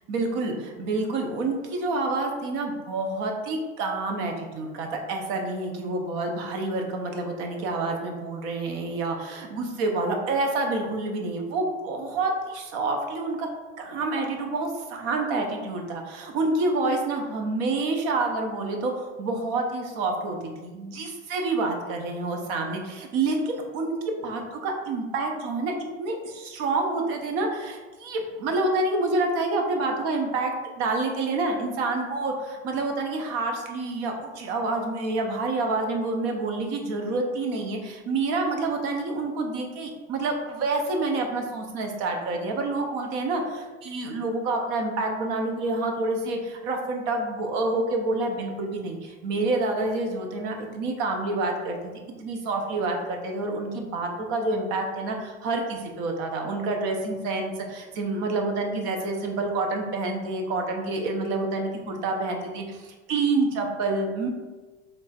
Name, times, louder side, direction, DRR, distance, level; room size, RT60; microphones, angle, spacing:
voice 1, 0.1-13.5 13.8-20.4 20.6-24.0 24.2-25.7 26.0-30.5 30.8-51.8 52.2-64.3, right 2 dB, 50° right, 2 dB, 0.8 m, -28 dB
3.4 x 2.4 x 4.1 m, 1.3 s
supercardioid pair, 150°, 30 cm